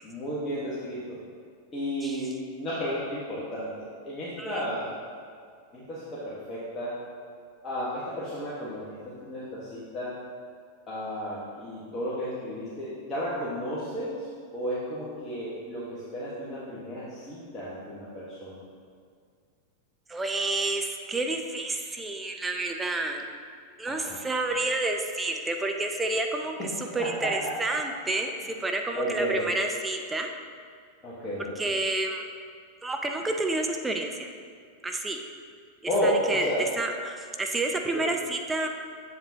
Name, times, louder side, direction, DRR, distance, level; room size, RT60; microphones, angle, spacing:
voice 1, 0.0-1.2 1.7-4.9 5.7-7.0 7.6-10.1 10.9-14.3 14.5-18.6 23.9-24.2 27.0-27.5 28.9-29.4 31.0-31.5 35.9-36.6 37.9-38.0, equal, 25° left, -9 dB, 1.5 m, -32 dB
voice 2, 20.1-23.2 23.8-30.3 31.6-32.2 32.8-34.3 34.8-35.2 36.0-38.7, right 2 dB, 10° right, 3 dB, 0.5 m, -29 dB
7.6 x 7.6 x 2.9 m, 2.1 s
figure-of-eight pair, 90°, 0 cm